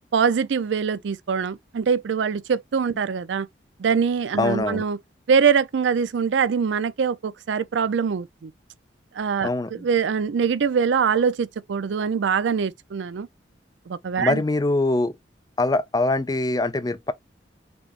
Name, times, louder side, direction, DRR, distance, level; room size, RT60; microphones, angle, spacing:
voice 1, 0.1-3.5 3.8-5.0 5.3-8.5 9.1-13.3 13.9-14.4, right 6 dB, 80° right, 0.4 m, -23 dB
voice 2, 4.4-4.8 9.4-9.8 14.2-15.2 15.6-17.1, left 2 dB, 20° left, 0.4 m, -23 dB
6.1 x 3.2 x 2.4 m
head